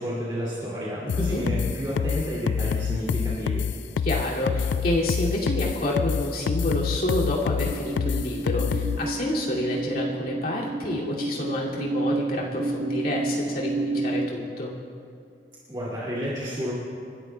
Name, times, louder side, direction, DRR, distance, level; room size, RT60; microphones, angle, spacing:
voice 1, 0.0-3.6 15.7-16.7, equal, 25° right, -8 dB, 2.5 m, -30 dB
sound 1, 1.1-9.0, left 6 dB, 75° left, 0.3 m, -26 dB
voice 2, 4.0-14.7, left 1 dB, 55° left, -5 dB, 2.6 m, -28 dB
sound 2, 7.6-14.3, right 2 dB, 50° right, 1.4 m, -30 dB
30.0 x 13.5 x 2.3 m, 2.3 s
head